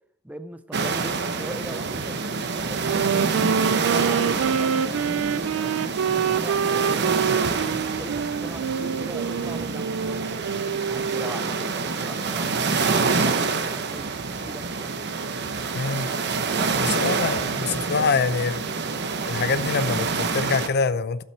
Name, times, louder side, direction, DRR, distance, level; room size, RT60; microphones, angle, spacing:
voice 1, 0.2-3.3 3.6-5.8 6.3-10.5 10.9-14.9 15.5-18.2, right 1 dB, 5° right, 0.5 m, -40 dB
sound 1, 0.7-20.7, right 4 dB, 55° right, 0.9 m, -27 dB
Wind instrument woodwind instrument, 2.7-11.4, right 7 dB, 75° right, 0.4 m, -26 dB
voice 2, 15.7-16.1 16.8-18.6 19.3-21.2, left 4 dB, 55° left, 0.6 m, -25 dB
11.5 x 7.9 x 4.5 m
head